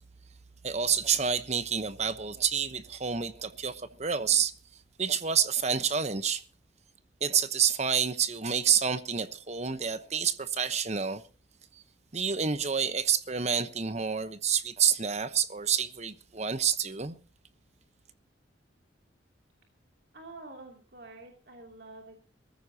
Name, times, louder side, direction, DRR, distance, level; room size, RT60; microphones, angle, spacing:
voice 1, 0.6-4.5 5.0-6.4 7.2-11.2 11.7-11.8 12.1-17.2, right 7 dB, 35° right, 1.0 m, -28 dB
voice 2, 20.1-22.2, right 2 dB, 60° right, 2.8 m, -47 dB
22.0 x 14.5 x 2.9 m
head